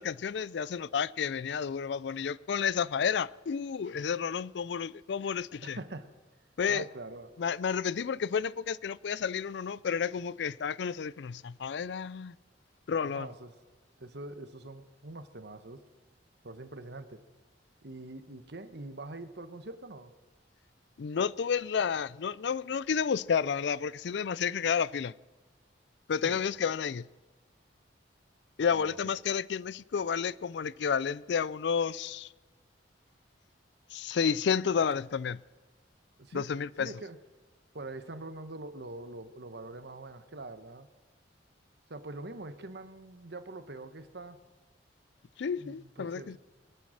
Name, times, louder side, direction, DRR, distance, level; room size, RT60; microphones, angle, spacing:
voice 1, 0.0-5.8 6.6-6.9 7.4-12.4 12.9-13.3 21.0-25.1 26.1-27.1 28.6-32.3 33.9-35.4 36.3-36.9 45.4-46.4, left 6 dB, 65° left, 0.4 m, -31 dB
voice 2, 5.6-6.1 6.7-7.4 13.0-13.5 14.0-15.8 16.4-17.2 17.8-20.1 26.2-26.4 28.7-29.0 36.2-36.5 36.8-37.2 37.7-40.9 41.9-44.4 45.6-46.4, right 2 dB, 60° right, 1.1 m, -44 dB
23.5 x 9.3 x 6.5 m
head